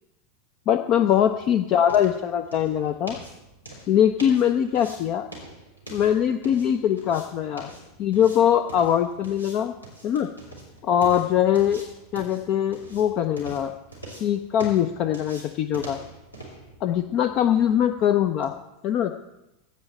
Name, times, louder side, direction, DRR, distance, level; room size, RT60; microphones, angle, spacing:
sound 1, 0.7-18.6, right 1 dB, 85° left, 3.7 m, -44 dB
voice 1, 0.7-3.2 3.9-5.3 5.9-7.7 8.0-9.7 10.0-10.3 10.8-11.8 12.1-13.7 14.2-16.0 16.8-18.5 18.8-19.1, left 10 dB, 40° left, 10 dB, 0.5 m, -22 dB
16.0 x 5.5 x 7.4 m, 0.94 s
figure-of-eight pair, 85°, 0 cm